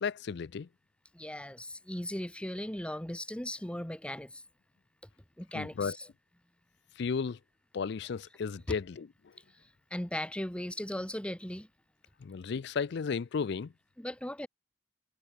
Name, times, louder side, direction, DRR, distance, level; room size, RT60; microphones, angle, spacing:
voice 1, 0.0-0.7 5.5-5.9 7.0-7.4 7.7-9.3 12.2-13.7, left 5 dB, 65° left, 0.4 m, -34 dB
voice 2, 1.1-4.4 5.4-6.1 9.5-11.7 14.0-14.5, left 1 dB, 5° left, 1.2 m, -38 dB
head